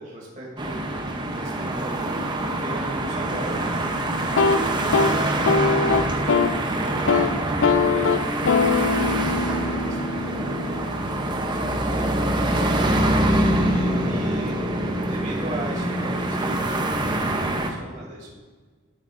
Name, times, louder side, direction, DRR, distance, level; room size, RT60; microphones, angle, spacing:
voice 1, 0.0-7.1 7.6-13.1 13.5-14.6 14.9-18.3, right 1 dB, 40° right, -3 dB, 2.7 m, -39 dB
sound 1, 0.6-17.7, right 1 dB, 20° right, 0.7 m, -25 dB
sound 2, 4.2-6.6 6.9-7.3 7.6-11.5, left 4 dB, 75° left, 0.5 m, -23 dB
13.0 x 7.2 x 2.5 m, 1.4 s
head